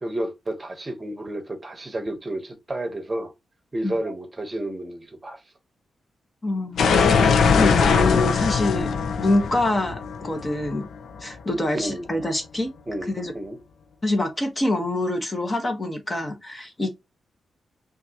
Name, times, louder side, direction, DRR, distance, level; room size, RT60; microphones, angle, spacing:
voice 1, 0.0-3.3 3.7-5.4 11.7-12.1 12.9-13.6, right 1 dB, 25° right, 1.0 m, -31 dB
voice 2, 6.4-7.1 7.6-10.9 11.2-12.7 13.1-13.3 14.0-16.9, left 2 dB, 25° left, 1.3 m, -25 dB
sound 1, 6.8-11.5, left 5 dB, 80° left, 0.7 m, -21 dB
5.8 x 2.6 x 2.9 m
cardioid pair, 95°, 0 cm